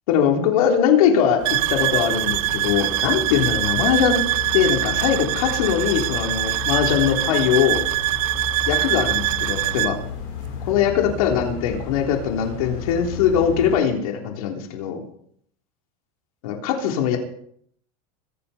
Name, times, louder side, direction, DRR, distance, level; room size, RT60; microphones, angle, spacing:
voice 1, 0.1-4.2 4.5-7.8 8.7-10.0 10.7-15.0 16.4-17.2, left 8 dB, 70° left, 2 dB, 3.5 m, -21 dB
sound 1, 1.4-13.8, left 6 dB, 50° left, 4.6 m, -33 dB
sound 2, 1.4-10.0, right 18 dB, 65° right, 0.5 m, -23 dB
23.5 x 11.0 x 4.3 m, 0.65 s
supercardioid pair, 170°, 19 cm